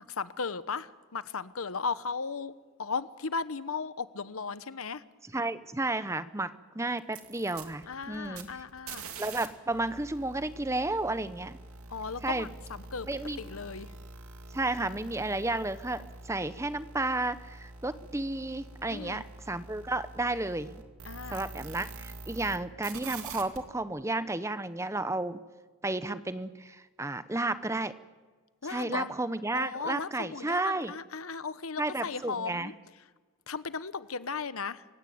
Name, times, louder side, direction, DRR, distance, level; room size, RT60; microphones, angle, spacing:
voice 1, 0.0-2.5 2.8-5.0 7.9-9.0 11.9-13.1 13.4-13.9 18.9-19.2 21.0-21.5 28.6-29.1 29.5-32.7 33.5-34.9, left 5 dB, 80° left, 1.0 m, -36 dB
voice 2, 5.3-8.5 9.2-11.6 12.2-12.5 13.1-13.4 14.5-20.8 21.3-25.4 25.8-27.9 28.6-30.9 31.8-32.7, right 2 dB, 15° right, 0.8 m, -32 dB
sound 1, 7.0-9.5 9.7-22.6 22.8-23.6, right 3 dB, 85° right, 2.6 m, -46 dB
27.5 x 16.5 x 9.3 m
head